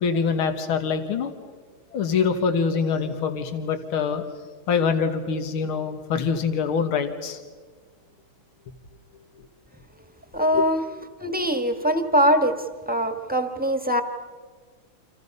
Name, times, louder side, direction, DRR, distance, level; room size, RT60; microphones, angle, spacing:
voice 1, 0.0-1.3 1.9-4.3 4.7-7.4 10.5-10.6, left 6 dB, 80° left, 7 dB, 2.3 m, -24 dB
voice 2, 10.3-10.8 11.2-12.6 12.9-14.0, equal, 5° right, 7 dB, 1.3 m, -22 dB
30.0 x 27.0 x 5.4 m, 1.5 s
omnidirectional pair, 2.3 m